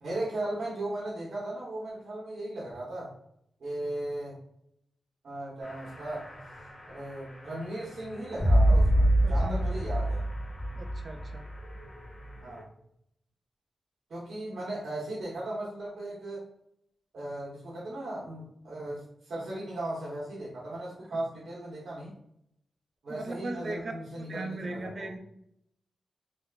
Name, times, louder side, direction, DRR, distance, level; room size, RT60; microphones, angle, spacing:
voice 1, 0.0-3.1 3.6-4.4 5.2-6.3 6.9-10.2 12.4-12.7 14.1-16.5 17.1-22.1 23.0-25.1, right 1 dB, 70° right, -7 dB, 0.8 m, -37 dB
sound 1, 5.6-12.6, right 1 dB, 30° left, 0.9 m, -28 dB
voice 2, 9.2-9.8 10.8-11.4 23.1-25.2, right 2 dB, 55° right, 5 dB, 0.5 m, -38 dB
3.3 x 2.1 x 2.3 m, 0.75 s
cardioid pair, 55°, 0 cm